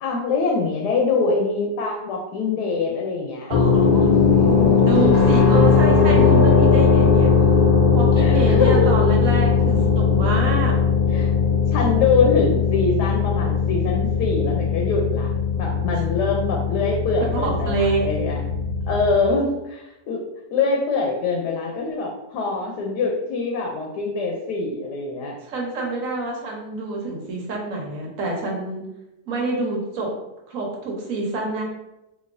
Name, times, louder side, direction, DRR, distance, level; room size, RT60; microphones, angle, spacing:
voice 1, 0.0-3.5 8.2-9.0 11.1-11.3 11.7-18.4 18.9-20.2 20.5-25.3, left 4 dB, 90° left, 1 dB, 1.2 m, -24 dB
sound 1, 3.5-19.2, left 5 dB, 70° left, 1.0 m, -18 dB
voice 2, 3.5-4.1 4.8-7.3 7.9-10.8 17.2-18.0 25.4-28.8 29.3-30.1 30.5-31.6, right 3 dB, 60° right, -1 dB, 1.2 m, -27 dB
3.9 x 2.9 x 2.5 m, 0.94 s
omnidirectional pair, 1.7 m